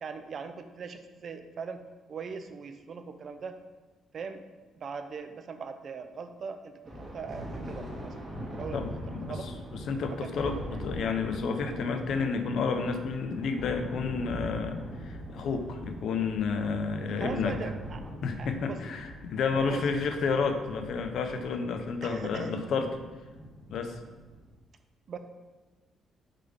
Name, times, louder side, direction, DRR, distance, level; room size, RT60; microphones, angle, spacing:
voice 1, 0.0-1.8 2.1-3.6 4.1-4.4 4.7-8.2 8.5-8.8 9.2-9.5 10.2-10.3 10.7-10.8 17.2-18.0 18.4-18.9 19.5-19.8 22.0-22.5 25.1-25.2, right 5 dB, 55° right, 8 dB, 0.3 m, -40 dB
Thunder, 6.8-24.5, equal, 15° right, 1.0 m, -42 dB
voice 2, 8.7-9.4 9.9-17.5 18.2-23.0 23.7-24.0, left 5 dB, 70° left, 6 dB, 0.4 m, -31 dB
3.7 x 3.2 x 3.4 m, 1.2 s
cardioid pair, 90°, 0 cm